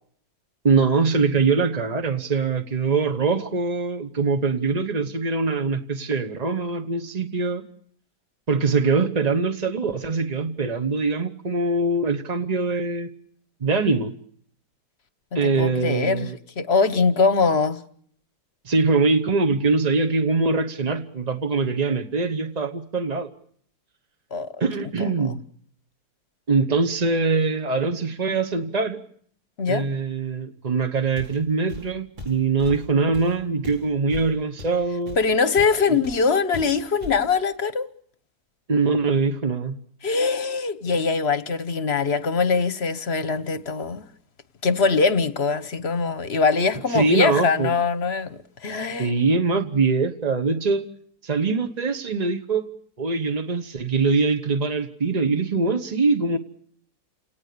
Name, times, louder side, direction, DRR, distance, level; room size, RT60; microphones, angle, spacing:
voice 1, 0.6-7.6 8.5-13.1 13.6-14.1 15.3-16.4 18.6-23.3 24.6-25.4 26.5-29.0 29.7-35.2 35.9-36.0 38.7-39.8 46.9-47.7 49.0-50.8 51.2-52.7 53.0-56.4, right 4 dB, 30° right, 0.8 m, -23 dB
voice 2, 15.3-16.3 16.6-17.8 24.3-24.7 25.0-25.1 29.6-29.9 35.2-37.9 40.0-44.0 44.6-49.1, left 4 dB, 40° left, 1.2 m, -22 dB
Walk footsteps, 31.2-31.4 31.7-35.8 36.0-36.3 36.5-37.3, left 3 dB, 75° right, 5.6 m, -38 dB
29.5 x 18.5 x 6.8 m
omnidirectional pair, 2.0 m